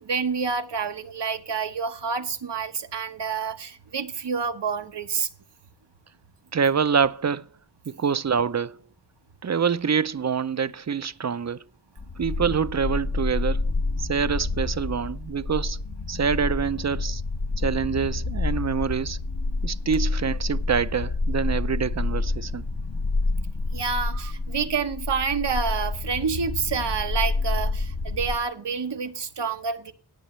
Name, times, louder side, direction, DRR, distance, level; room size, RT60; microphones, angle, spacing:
voice 1, 0.0-5.3 23.7-29.9, right 5 dB, 90° right, 1.1 m, -28 dB
voice 2, 6.5-7.5 7.9-8.8 9.4-11.6 12.2-13.6 14.0-15.8 16.1-17.2 17.6-19.2 19.6-22.7 24.1-24.3 26.8-26.9, right 6 dB, 40° right, 0.5 m, -26 dB
sound 1, 12.0-28.4, left 3 dB, 50° left, 0.9 m, -28 dB
18.0 x 7.7 x 3.1 m
wide cardioid pair, 70°, 41 cm